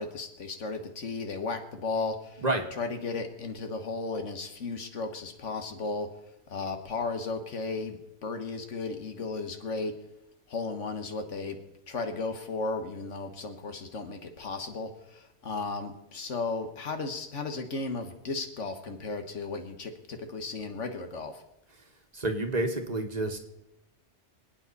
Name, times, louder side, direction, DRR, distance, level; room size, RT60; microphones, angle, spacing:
voice 1, 0.0-6.1 6.5-9.9 10.5-11.6 11.9-21.4, left 3 dB, 80° left, 6 dB, 1.7 m, -35 dB
voice 2, 22.1-23.4, right 2 dB, 35° right, 4 dB, 1.5 m, -29 dB
26.5 x 9.0 x 4.1 m, 0.85 s
omnidirectional pair, 1.2 m